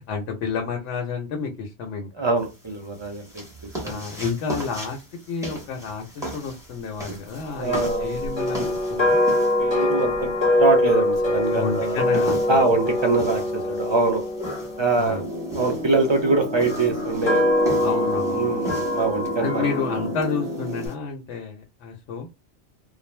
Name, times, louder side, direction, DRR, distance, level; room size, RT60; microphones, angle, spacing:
voice 1, 0.0-2.1 3.8-9.2 11.5-12.4 15.0-15.2 17.8-18.5 19.4-22.3, left 5 dB, 80° left, 2 dB, 0.9 m, -30 dB
voice 2, 2.1-3.4 3.8-4.0 7.6-8.1 9.6-12.0 12.5-14.2 14.8-15.2 15.5-17.4 18.2-19.6, right 3 dB, 30° right, 2 dB, 0.5 m, -23 dB
sound 1, 2.4-20.9, right 1 dB, 5° right, 0.8 m, -38 dB
sound 2, 7.7-15.9 16.6-20.1, left 1 dB, 30° left, 0.7 m, -24 dB
sound 3, 15.1-20.9, equal, 65° right, 0.9 m, -31 dB
2.4 x 2.0 x 3.1 m, 0.25 s
omnidirectional pair, 1.2 m